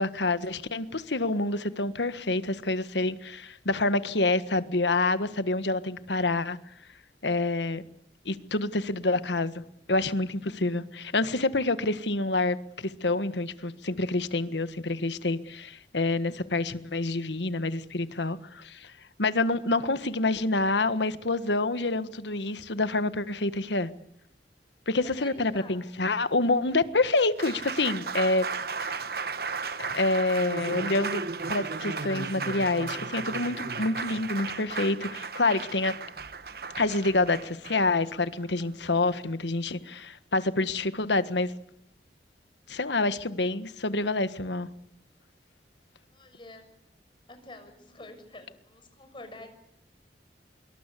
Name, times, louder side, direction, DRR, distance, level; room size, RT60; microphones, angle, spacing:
voice 1, 0.0-6.6 7.2-7.8 8.2-9.6 9.9-18.9 19.2-23.9 24.9-28.5 28.8-29.0 29.9-31.2 31.5-35.9 36.8-41.5 42.7-44.7, left 2 dB, 85° left, 1.5 m, -27 dB
voice 2, 25.0-25.8 46.1-46.7 47.3-49.5, left 2 dB, 30° left, 6.5 m, -47 dB
Applause, 27.0-39.2, right 4 dB, 60° right, 1.4 m, -35 dB
25.5 x 23.0 x 8.4 m
head